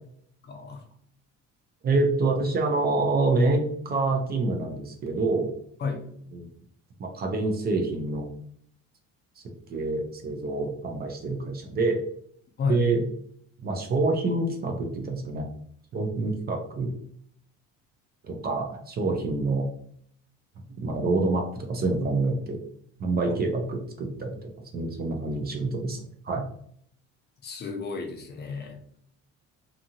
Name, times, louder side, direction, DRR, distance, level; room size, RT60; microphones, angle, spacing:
voice 1, 0.4-0.9 5.8-6.1 12.6-12.9 23.3-23.4 27.4-29.0, left 5 dB, 35° left, 3 dB, 0.5 m, -32 dB
voice 2, 1.8-5.5 6.3-6.5 7.0-8.3 9.4-9.5 9.7-12.0 12.7-13.0 13.6-15.5 15.9-16.9 18.2-19.6 20.8-22.6 23.0-26.4, right 3 dB, 30° right, 3 dB, 0.4 m, -27 dB
2.7 x 2.4 x 2.7 m, 0.64 s
cardioid pair, 150°, 31 cm